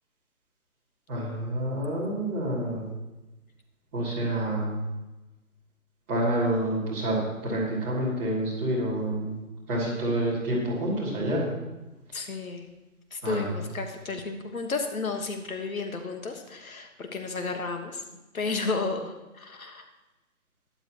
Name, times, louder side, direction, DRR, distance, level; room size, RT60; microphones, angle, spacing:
voice 1, 1.1-2.9 3.9-4.9 6.1-7.2 7.4-9.4 9.7-11.5 13.2-13.6, right 1 dB, 10° right, -11 dB, 2.9 m, -28 dB
voice 2, 12.1-12.7 13.1-18.0 18.3-19.9, left 4 dB, 70° left, 5 dB, 1.6 m, -32 dB
12.5 x 11.0 x 3.1 m, 1.0 s
hypercardioid pair, 175°, 43 cm